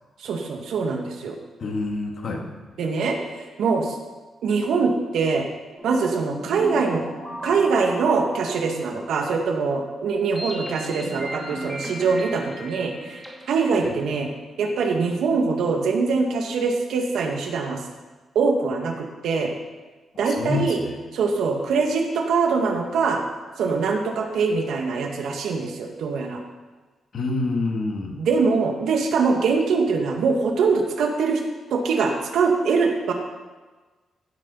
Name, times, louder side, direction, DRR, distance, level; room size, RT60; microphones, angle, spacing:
voice 1, 0.2-1.4 2.8-4.0 4.4-5.5 5.8-7.0 7.4-13.2 13.5-14.3 14.6-17.8 18.4-19.5 20.2-20.8 21.1-23.2 23.6-26.4 28.2-31.4 31.7-33.1, right 4 dB, 85° right, 2 dB, 1.9 m, -23 dB
voice 2, 1.6-2.5 13.8-13.9 20.1-21.0 27.1-28.2, left 3 dB, 50° left, 2 dB, 1.9 m, -27 dB
sound 1, 5.8-14.1, right 1 dB, ahead, 2.6 m, -37 dB
15.5 x 6.7 x 5.6 m, 1.3 s
wide cardioid pair, 150°, 0 cm